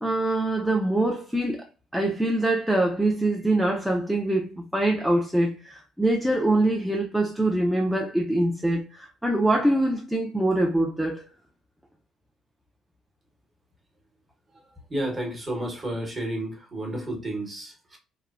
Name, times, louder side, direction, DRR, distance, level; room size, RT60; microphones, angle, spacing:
voice 1, 0.0-1.7 1.9-11.2, right 1 dB, 5° right, 0.3 m, -24 dB
voice 2, 14.9-18.0, right 1 dB, 25° right, 0.9 m, -31 dB
3.0 x 2.1 x 2.3 m
cardioid pair, 115°, 0 cm